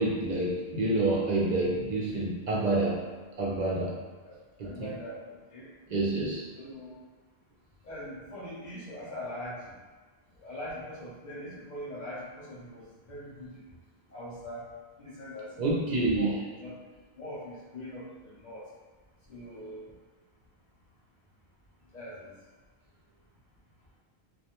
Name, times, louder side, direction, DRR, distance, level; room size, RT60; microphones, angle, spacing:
voice 1, 0.0-3.0 3.4-3.9 4.6-4.9 5.9-6.5 15.6-16.4, right 2 dB, 55° right, -4 dB, 0.6 m, -28 dB
voice 2, 4.6-5.7 6.5-6.9 7.8-9.8 10.4-13.6 14.1-14.7 15.0-16.8 17.2-18.6 19.3-19.9 21.9-22.3, equal, 50° left, -6 dB, 0.7 m, -42 dB
2.4 x 2.1 x 2.8 m, 1.4 s
omnidirectional pair, 1.0 m